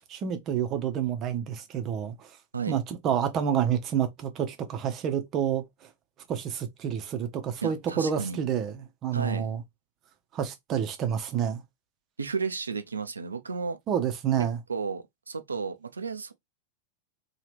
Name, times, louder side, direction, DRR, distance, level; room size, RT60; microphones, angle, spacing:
voice 1, 0.1-2.3 2.7-5.9 6.3-9.6 10.3-11.6 13.9-14.6, right 8 dB, 30° right, 0.7 m, -29 dB
voice 2, 7.6-8.4 9.1-9.5 12.2-13.8 14.7-16.3, right 5 dB, 75° right, 0.4 m, -33 dB
2.9 x 2.4 x 3.2 m
figure-of-eight pair, 90°, 0 cm